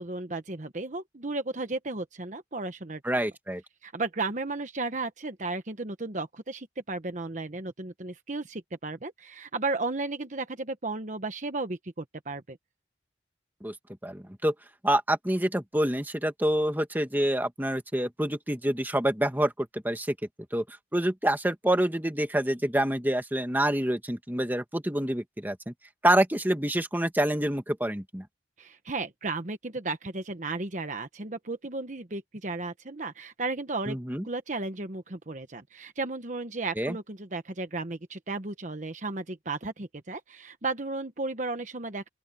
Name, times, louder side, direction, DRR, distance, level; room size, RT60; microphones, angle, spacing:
voice 1, 0.0-3.0 3.8-12.6 28.6-34.0 34.2-42.1, right 3 dB, 45° right, 1.1 m, -34 dB
voice 2, 3.0-3.6 13.6-13.7 14.0-14.5 14.8-20.1 20.5-20.6 20.9-25.7 26.0-28.3 33.9-34.2 36.8-37.0, right 1 dB, 10° right, 2.0 m, -27 dB
open air
head